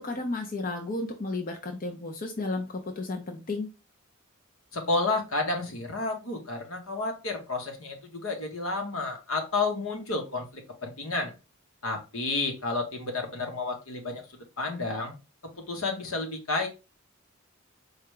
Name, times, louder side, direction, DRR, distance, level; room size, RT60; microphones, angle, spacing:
voice 1, 0.0-3.7, left 2 dB, 40° left, 2 dB, 0.7 m, -33 dB
voice 2, 4.7-11.3 11.8-14.2 14.6-15.1 15.6-16.7, left 3 dB, 75° left, 3 dB, 1.2 m, -31 dB
4.8 x 2.3 x 4.8 m, 0.29 s
head